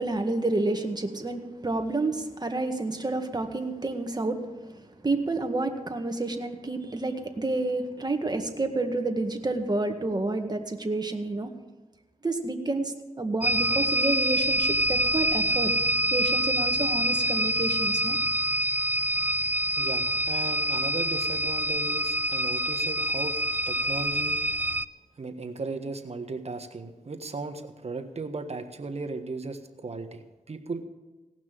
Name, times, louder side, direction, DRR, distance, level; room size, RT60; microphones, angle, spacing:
voice 1, 0.0-4.4 5.0-11.5 12.2-15.7 16.1-18.2, right 2 dB, 30° right, 5 dB, 1.8 m, -29 dB
sound 1, 13.4-24.9, right 1 dB, 15° right, 0.5 m, -26 dB
voice 2, 19.8-23.3 23.7-24.4 25.2-30.8, right 3 dB, 50° right, 7 dB, 1.5 m, -36 dB
17.5 x 6.0 x 7.6 m, 1.2 s
cardioid pair, 50°, 13 cm